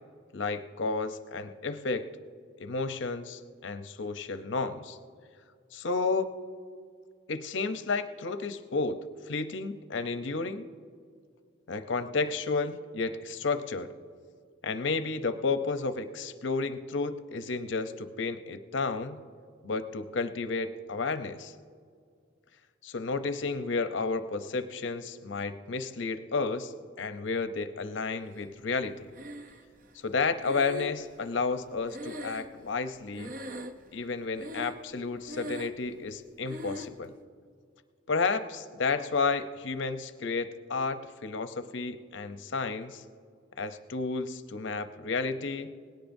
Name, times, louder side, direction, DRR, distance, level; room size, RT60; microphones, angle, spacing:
voice 1, 0.3-2.1 2.6-5.0 5.7-6.3 7.3-9.0 9.3-10.7 11.7-13.9 14.6-19.2 19.6-21.5 22.8-29.1 30.0-33.3 33.9-37.1 38.1-43.0 43.6-45.7, left 4 dB, 65° left, 10 dB, 0.7 m, -32 dB
Breathing, 29.1-29.9 30.4-32.9 33.1-34.0 34.3-34.9 35.2-35.9 36.5-37.0, left 1 dB, 40° right, 0.6 m, -40 dB
19.5 x 17.5 x 2.6 m, 2.2 s
head